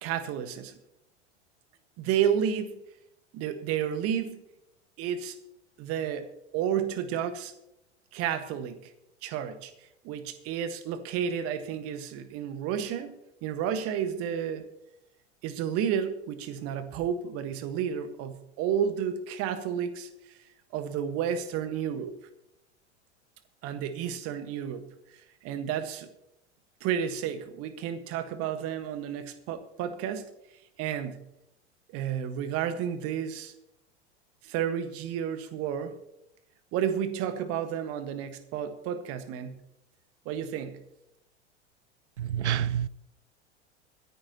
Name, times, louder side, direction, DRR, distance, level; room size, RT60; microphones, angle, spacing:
voice 1, 0.0-0.7 2.0-2.7 3.3-4.4 5.0-5.4 5.8-7.5 8.1-8.9 9.2-9.7 10.0-13.1 13.4-14.6 15.4-20.1 20.7-22.1 23.6-24.9 25.4-26.1 26.8-30.3 30.8-31.2 31.9-33.5 34.4-35.9 36.7-39.6 40.2-40.8, right 8 dB, 40° right, 1.5 m, -31 dB
voice 2, 42.2-42.9, right 10 dB, 75° right, 0.6 m, -28 dB
25.0 x 9.6 x 2.9 m
figure-of-eight pair, 80°, 35 cm